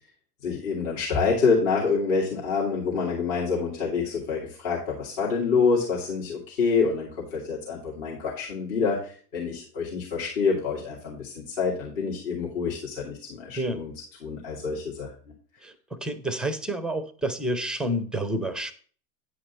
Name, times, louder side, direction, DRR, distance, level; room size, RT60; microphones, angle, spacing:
voice 1, 0.4-13.9 14.2-15.1, left 5 dB, 55° left, -5 dB, 2.6 m, -27 dB
voice 2, 15.6-18.7, right 1 dB, ahead, 12 dB, 0.4 m, -29 dB
9.7 x 5.0 x 4.2 m, 0.43 s
hypercardioid pair, 100°, 47 cm